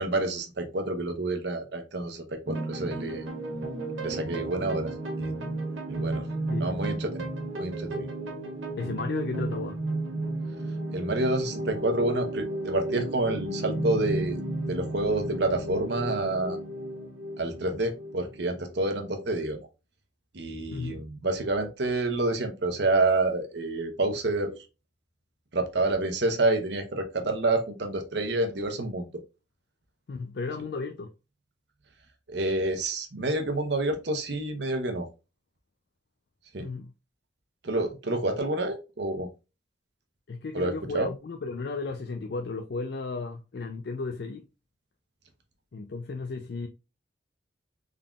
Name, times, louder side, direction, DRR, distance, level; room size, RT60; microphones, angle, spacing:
voice 1, 0.0-3.2 4.0-5.4 5.9-6.3 6.6-7.3 7.6-8.1 10.9-14.4 14.7-16.6 17.4-19.6 20.3-24.5 25.5-29.2 32.3-35.1 36.5-36.7 37.6-39.3 40.5-41.1, right 2 dB, 60° right, 0.9 m, -28 dB
sound 1, 2.5-19.4, right 1 dB, 80° right, 1.5 m, -33 dB
voice 2, 8.8-9.8 20.7-21.0 30.1-31.1 36.6-36.9 40.3-44.4 45.7-46.7, left 4 dB, 55° left, 0.4 m, -34 dB
3.7 x 3.7 x 2.3 m
head